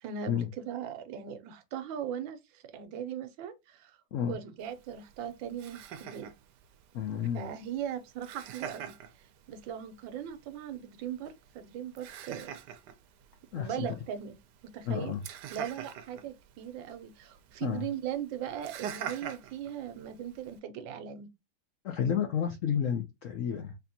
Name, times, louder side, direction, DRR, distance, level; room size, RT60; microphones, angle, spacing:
voice 1, 0.0-4.0 4.3-6.3 7.3-8.9 9.5-12.5 13.5-14.4 14.6-15.1 15.5-21.3, right 9 dB, 90° right, 1.4 m, -39 dB
Laughter, 4.6-20.6, right 8 dB, 75° right, 1.1 m, -46 dB
voice 2, 6.9-7.5 13.5-14.0 14.9-15.2 17.6-17.9 21.8-23.7, left 8 dB, 85° left, 0.6 m, -31 dB
4.3 x 2.7 x 2.7 m
omnidirectional pair, 2.0 m